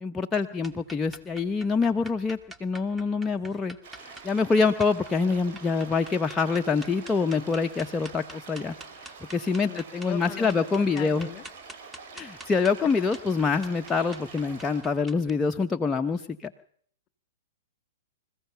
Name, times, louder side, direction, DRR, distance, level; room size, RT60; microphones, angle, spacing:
voice 1, 0.0-8.7 9.3-11.3 12.1-16.5, left 4 dB, 15° left, 5 dB, 0.9 m, -26 dB
sound 1, 0.6-15.3, right 1 dB, 10° right, 1.7 m, -47 dB
sound 2, 3.8-14.8, right 5 dB, 50° right, 6.9 m, -46 dB
voice 2, 9.6-11.4 12.8-13.1, left 12 dB, 35° left, 15 dB, 1.7 m, -40 dB
26.5 x 15.0 x 7.0 m, 0.62 s
figure-of-eight pair, 110°, 0 cm